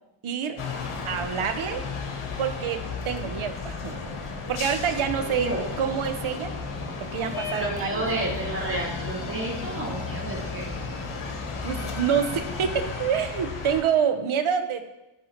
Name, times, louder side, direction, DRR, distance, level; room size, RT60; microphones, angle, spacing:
voice 1, 0.2-0.6 1.0-1.9 2.4-4.0 4.5-5.5 5.8-6.5 7.0-8.3 11.6-14.8, right 7 dB, 75° right, 9 dB, 0.9 m, -27 dB
sound 1, 0.6-13.8, left 5 dB, 85° left, 1.3 m, -34 dB
sound 2, 3.8-12.7, left 2 dB, 60° left, 2.6 m, -40 dB
voice 2, 5.2-5.6 7.5-10.7, right 2 dB, 25° right, -2 dB, 2.4 m, -31 dB
9.9 x 5.5 x 4.4 m, 0.99 s
cardioid pair, 90°, 49 cm